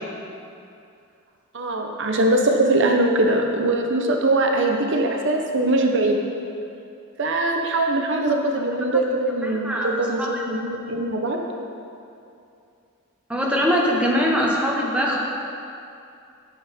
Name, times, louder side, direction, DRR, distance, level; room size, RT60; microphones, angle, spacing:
voice 1, 1.5-6.2 7.2-11.4, right 2 dB, 55° right, 2 dB, 0.7 m, -21 dB
voice 2, 9.4-9.9 10.2-10.3 13.3-15.2, equal, 5° right, -3 dB, 1.0 m, -22 dB
12.0 x 7.2 x 3.5 m, 2.5 s
head